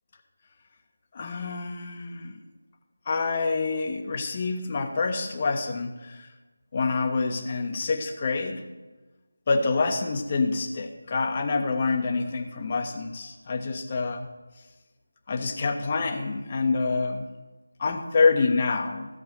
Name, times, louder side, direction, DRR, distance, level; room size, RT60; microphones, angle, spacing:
voice 1, 1.1-2.3 3.1-6.3 6.7-8.6 9.5-14.3 15.3-17.3 17.8-19.1, left 4 dB, 30° left, 5 dB, 1.2 m, -27 dB
15.0 x 7.1 x 6.5 m, 1.2 s
figure-of-eight pair, 160°, 0 cm